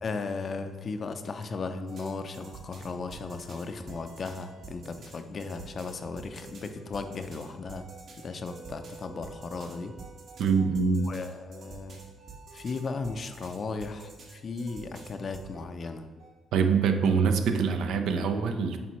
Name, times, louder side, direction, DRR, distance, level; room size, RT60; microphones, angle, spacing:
voice 1, 0.0-7.9 8.2-9.9 11.1-12.0 12.5-16.1, left 4 dB, 45° left, 8 dB, 0.5 m, -36 dB
sound 1, 1.9-16.3, right 3 dB, 65° right, 1.6 m, -48 dB
voice 2, 10.4-11.1 16.5-18.8, right 5 dB, 80° right, 6 dB, 0.5 m, -24 dB
8.4 x 3.8 x 3.1 m, 1.3 s
cardioid pair, 90°, 0 cm